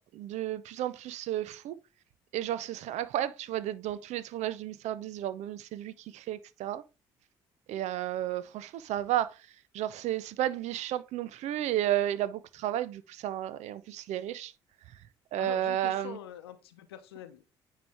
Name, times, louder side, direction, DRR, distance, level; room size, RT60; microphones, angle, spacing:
voice 1, 0.1-1.8 2.3-6.8 7.7-9.4 9.7-14.5 15.3-16.2, right 12 dB, 65° right, 0.5 m, -32 dB
voice 2, 15.4-17.4, left 11 dB, 85° left, 0.7 m, -45 dB
9.6 x 3.2 x 3.4 m
hypercardioid pair, 50°, 13 cm